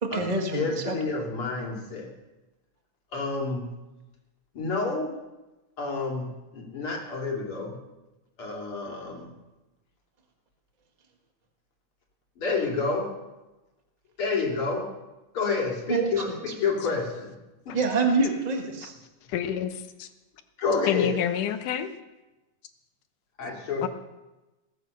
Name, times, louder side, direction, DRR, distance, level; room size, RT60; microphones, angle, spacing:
voice 1, 0.0-0.9 15.9-16.4 17.7-18.9, right 3 dB, 65° right, 2 dB, 0.4 m, -26 dB
voice 2, 0.5-2.1 3.1-3.7 4.5-5.2 5.8-7.7 8.4-9.3 12.4-13.1 14.2-14.9 15.3-17.4 17.6-17.8 20.6-21.2 23.4-23.9, left 4 dB, 45° left, -1 dB, 3.5 m, -29 dB
voice 3, 19.3-20.1 20.9-21.9 23.8-23.9, left 9 dB, 80° left, 8 dB, 2.5 m, -28 dB
19.5 x 8.8 x 6.7 m, 1.1 s
omnidirectional pair, 3.6 m